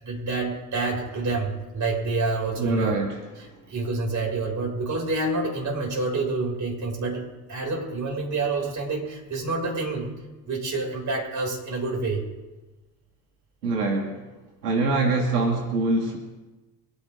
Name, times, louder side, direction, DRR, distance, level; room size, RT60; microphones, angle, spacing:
voice 1, 0.0-3.0 3.7-10.1 10.5-12.2, right 3 dB, 40° right, 0 dB, 6.1 m, -28 dB
voice 2, 2.6-3.2 13.6-14.2 14.6-16.2, right 3 dB, 80° right, 2 dB, 2.1 m, -24 dB
24.0 x 10.5 x 3.7 m, 1.1 s
hypercardioid pair, 65°, 45 cm